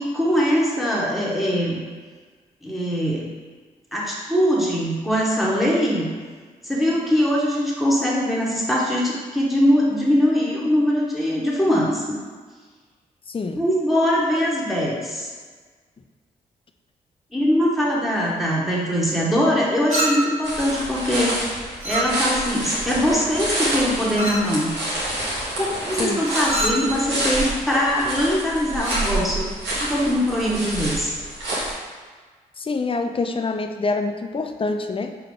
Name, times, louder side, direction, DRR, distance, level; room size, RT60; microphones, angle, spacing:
voice 1, 0.0-1.8 2.6-3.3 3.9-6.1 6.6-12.2 13.5-15.3 17.3-24.7 25.6-31.1, equal, ahead, -4 dB, 1.2 m, -22 dB
voice 2, 13.3-13.6 26.0-26.2 32.6-35.1, left 3 dB, 30° left, 6 dB, 0.5 m, -26 dB
Chink clink, 19.9-20.5 21.8-22.5 24.2-24.5 26.2-26.9 28.8-29.1, right 1 dB, 35° right, 1.4 m, -26 dB
sound 1, 20.4-31.7, right 1 dB, 80° right, 1.1 m, -28 dB
4.7 x 2.4 x 3.7 m, 1.5 s
supercardioid pair, 40°, 18 cm